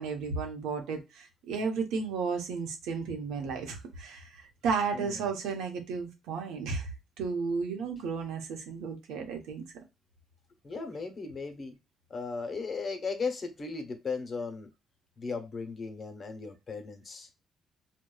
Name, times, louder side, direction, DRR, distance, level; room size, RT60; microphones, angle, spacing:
voice 1, 0.0-4.4 4.6-6.9 7.2-9.6, right 5 dB, 90° right, 0.9 m, -33 dB
voice 2, 4.9-5.3 10.6-11.8 12.1-14.7 15.2-17.3, left 4 dB, 45° left, 0.9 m, -36 dB
4.4 x 2.3 x 2.3 m
cardioid pair, 75°, 0 cm